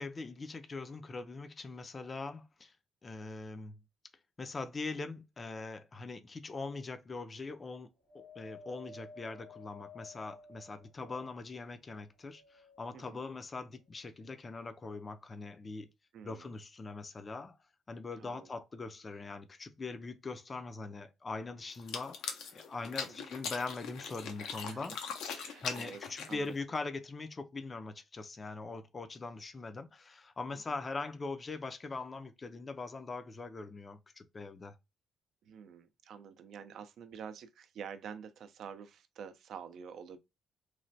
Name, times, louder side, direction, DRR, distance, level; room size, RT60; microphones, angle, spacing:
voice 1, 0.0-2.7 3.0-3.8 4.4-7.9 8.1-15.9 16.2-17.6 17.9-24.9 25.6-34.7, left 3 dB, 30° left, 0.4 m, -42 dB
Wind, 8.1-11.6 12.2-13.2 14.0-14.1, left 3 dB, 70° left, 1.2 m, -53 dB
voice 2, 12.9-13.2 16.1-16.5 18.2-18.5 23.1-23.3 24.4-25.0 25.4-26.6 30.5-30.6 35.4-40.2, right 7 dB, 70° right, 0.4 m, -48 dB
sound 1, 21.7-26.6, left 6 dB, 85° left, 0.6 m, -41 dB
3.1 x 2.1 x 2.6 m
cardioid pair, 90°, 0 cm